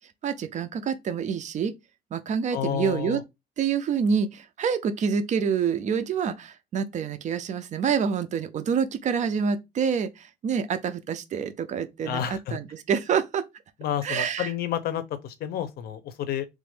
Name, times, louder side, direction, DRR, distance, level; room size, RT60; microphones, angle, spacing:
voice 1, 0.2-1.7 2.1-3.2 3.6-13.4 14.0-14.5, right 6 dB, 45° right, 0.5 m, -27 dB
voice 2, 2.5-3.2 12.0-12.6 13.8-16.5, left 10 dB, 65° left, 0.6 m, -30 dB
3.2 x 2.5 x 3.4 m
cardioid pair, 110°, 17 cm